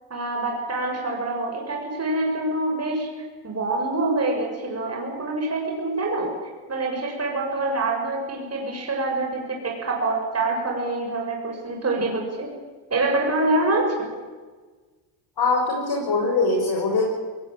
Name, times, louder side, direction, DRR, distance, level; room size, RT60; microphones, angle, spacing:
voice 1, 0.1-3.1 3.4-6.3 6.7-12.5 12.9-14.1, right 2 dB, 30° right, 0 dB, 6.8 m, -25 dB
voice 2, 15.4-17.0, left 3 dB, 50° left, 0 dB, 6.9 m, -22 dB
21.5 x 19.5 x 9.1 m, 1.4 s
cardioid pair, 90°, 49 cm